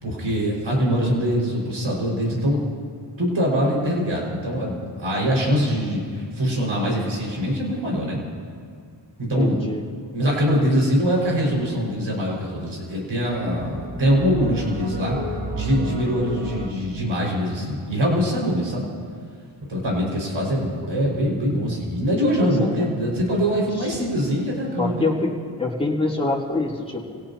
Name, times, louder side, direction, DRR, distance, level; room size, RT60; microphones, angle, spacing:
voice 1, 0.0-2.6 3.2-8.2 9.2-9.6 10.1-15.2 15.5-18.9 19.7-25.2, equal, 75° right, -3 dB, 5.5 m, -23 dB
voice 2, 9.4-9.8 22.4-22.7 23.8-24.0 24.8-25.3 25.6-27.2, left 2 dB, 10° left, -4 dB, 3.2 m, -25 dB
sound 1, 11.5-12.1 13.3-16.7, right 2 dB, 45° right, 3.6 m, -32 dB
28.0 x 17.5 x 2.9 m, 2.1 s
cardioid pair, 55°, 47 cm